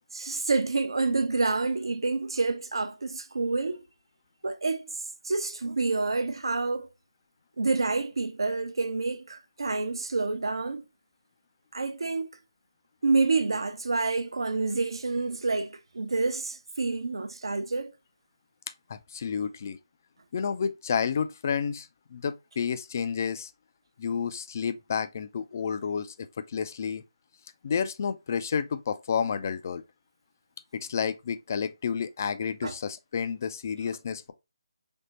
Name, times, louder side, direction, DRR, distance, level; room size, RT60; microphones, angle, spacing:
voice 1, 0.1-3.8 4.4-4.9 5.2-6.9 7.6-10.8 11.7-12.3 13.0-17.9 32.6-32.8, right 3 dB, 75° right, 0.6 m, -28 dB
voice 2, 18.9-19.8 20.3-23.5 24.0-26.1 26.5-27.0 27.6-29.8 30.7-34.3, left 6 dB, 35° left, 0.3 m, -30 dB
3.4 x 2.1 x 3.9 m
figure-of-eight pair, 165°, 3 cm